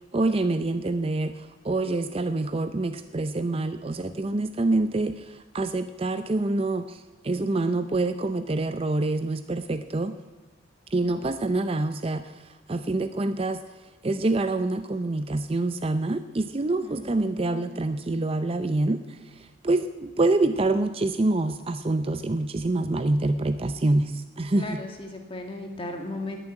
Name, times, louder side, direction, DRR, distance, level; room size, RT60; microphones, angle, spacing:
voice 1, 0.1-10.1 10.9-12.3 12.7-13.6 14.0-24.8, right 2 dB, 30° right, 10 dB, 0.5 m, -26 dB
voice 2, 16.8-17.8 24.6-26.4, left 1 dB, 25° left, 3 dB, 2.0 m, -36 dB
19.5 x 7.2 x 8.9 m, 1.2 s
head